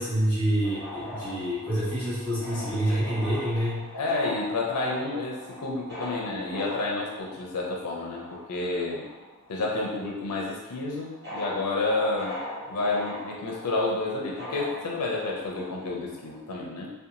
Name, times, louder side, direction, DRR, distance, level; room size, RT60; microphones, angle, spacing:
voice 1, 0.0-3.8, right 1 dB, 5° left, -9 dB, 1.1 m, -27 dB
sound 1, 0.6-9.6 9.8-16.4, left 1 dB, 50° right, 1.0 m, -40 dB
voice 2, 3.9-9.1 9.5-12.4 12.7-16.9, left 2 dB, 90° left, -2 dB, 0.5 m, -30 dB
2.8 x 2.2 x 2.5 m, 1.2 s
head